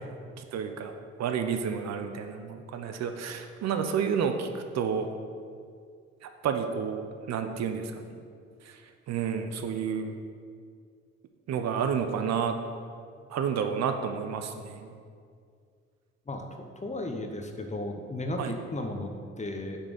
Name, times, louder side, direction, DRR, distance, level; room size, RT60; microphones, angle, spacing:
voice 1, 0.4-0.9 1.2-5.1 6.2-8.2 8.6-8.8 9.1-10.1 11.5-12.6 13.3-14.9 18.4-18.6, right 7 dB, 60° right, 7 dB, 0.6 m, -30 dB
voice 2, 16.8-19.8, left 1 dB, 25° left, 4 dB, 0.8 m, -34 dB
5.6 x 4.2 x 5.1 m, 2.2 s
supercardioid pair, 60°, 30 cm